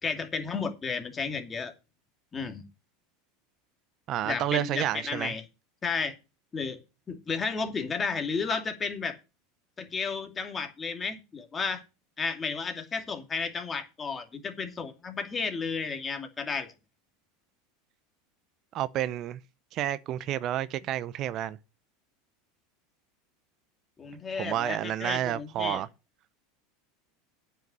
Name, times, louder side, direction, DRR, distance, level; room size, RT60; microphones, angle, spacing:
voice 1, 0.0-1.7 2.3-2.6 4.2-5.4 5.8-6.1 6.5-6.8 7.1-9.2 9.8-11.8 12.2-16.7 24.0-25.8, left 5 dB, 25° left, 2.5 m, -32 dB
voice 2, 4.1-5.3 18.7-19.4 19.7-21.6 24.4-25.9, right 12 dB, 45° right, 0.7 m, -30 dB
9.1 x 5.8 x 8.2 m
hypercardioid pair, 100°, 0 cm